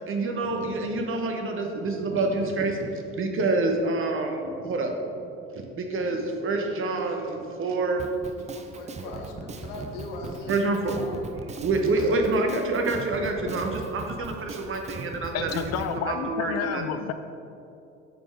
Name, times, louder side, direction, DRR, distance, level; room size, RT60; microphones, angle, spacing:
voice 1, 0.1-5.1 5.5-8.1 10.5-11.0 11.6-16.9, right 2 dB, 45° right, 3 dB, 1.0 m, -27 dB
Drum kit, 8.0-15.9, right 4 dB, 25° right, 0.5 m, -39 dB
voice 2, 8.2-11.2 12.0-12.1, left 3 dB, 85° left, 2 dB, 0.9 m, -40 dB
voice 3, 15.3-17.1, left 8 dB, 60° left, 9 dB, 0.5 m, -30 dB
6.8 x 3.9 x 4.6 m, 2.7 s
hypercardioid pair, 65°, 29 cm